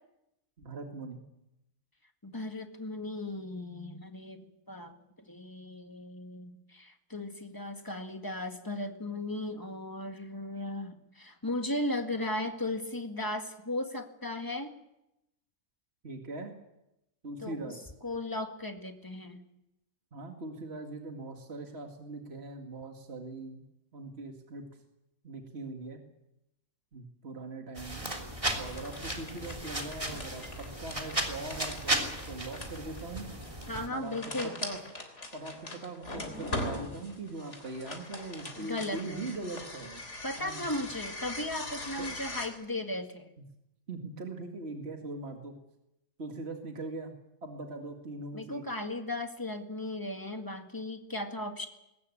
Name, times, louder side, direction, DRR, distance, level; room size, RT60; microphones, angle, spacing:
voice 1, 0.6-1.2 16.0-16.5 17.2-17.8 20.1-23.6 23.9-24.6 25.2-26.0 26.9-28.2 28.6-33.3 33.9-34.8 35.3-40.0 40.4-40.9 42.0-42.1 43.9-45.5 46.2-47.1 47.4-48.6, right 2 dB, 45° right, 3 dB, 2.4 m, -41 dB
voice 2, 2.2-4.9 5.3-14.7 17.4-17.7 18.0-19.4 33.7-34.5 38.6-39.3 40.2-43.3 48.3-51.7, left 1 dB, 15° left, 5 dB, 1.8 m, -36 dB
sound 1, 27.7-33.9, right 1 dB, 20° right, 3.1 m, -35 dB
sound 2, 28.5-42.5, left 2 dB, 50° left, 3.8 m, -41 dB
21.5 x 19.0 x 8.5 m, 0.88 s
omnidirectional pair, 1.5 m